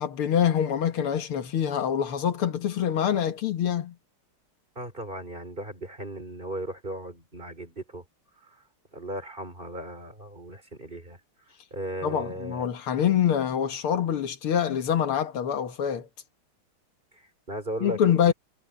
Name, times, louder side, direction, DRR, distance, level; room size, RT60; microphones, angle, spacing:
voice 1, 0.0-3.9 12.0-16.1 17.8-18.3, left 9 dB, 85° left, 2.4 m, -25 dB
voice 2, 4.8-8.0 8.4-8.6 8.9-11.2 11.7-12.7 17.1-18.0 18.3-18.4, right 1 dB, 25° right, 4.2 m, -37 dB
omnidirectional pair, 2.3 m